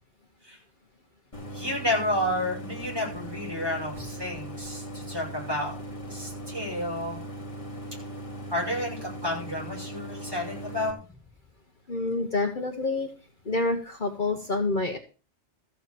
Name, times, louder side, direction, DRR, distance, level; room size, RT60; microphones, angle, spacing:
Idling, 1.3-10.9, equal, 30° left, 2.2 m, -39 dB
voice 1, 1.5-5.8 6.0-7.2 7.9-8.0 8.5-11.0, left 1 dB, 20° right, -3 dB, 6.2 m, -31 dB
voice 2, 11.9-13.1 13.4-15.0, left 2 dB, 45° left, 4 dB, 1.2 m, -27 dB
14.0 x 5.0 x 7.7 m, 0.35 s
omnidirectional pair, 1.2 m